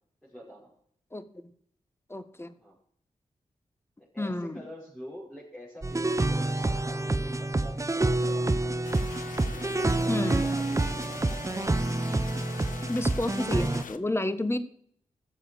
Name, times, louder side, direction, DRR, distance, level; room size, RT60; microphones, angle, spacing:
voice 1, 0.2-0.7 2.6-2.8 4.0-8.8 9.4-11.6, equal, ahead, -8 dB, 5.7 m, -46 dB
voice 2, 2.1-2.5 4.2-4.6 10.1-10.4 12.9-14.6, left 1 dB, 20° left, 12 dB, 1.4 m, -30 dB
sound 1, 5.8-13.8, right 2 dB, 20° right, 0.8 m, -28 dB
sound 2, 8.8-14.0, left 7 dB, 80° left, 0.8 m, -43 dB
13.5 x 7.4 x 6.4 m, 0.64 s
cardioid pair, 55°, 14 cm